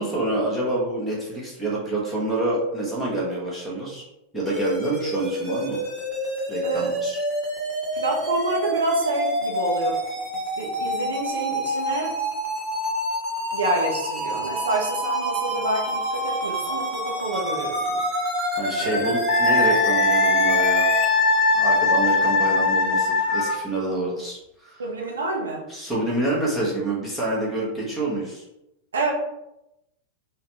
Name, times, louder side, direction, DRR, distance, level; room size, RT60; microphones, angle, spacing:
voice 1, 0.0-4.0 4.3-5.8 6.5-7.2 18.5-20.9 21.5-24.8 25.7-28.4, right 2 dB, 5° left, -5 dB, 1.3 m, -27 dB
sound 1, 4.5-21.1, right 1 dB, 15° right, 1.3 m, -27 dB
voice 2, 7.9-10.0 10.6-12.2 13.5-18.0 18.8-19.1 24.8-25.6 28.9-29.1, right 2 dB, 70° right, -1 dB, 0.7 m, -28 dB
Wind instrument woodwind instrument, 19.3-23.6, left 3 dB, 50° left, 0.5 m, -20 dB
3.8 x 2.2 x 3.0 m, 0.88 s
figure-of-eight pair, 90°, 0 cm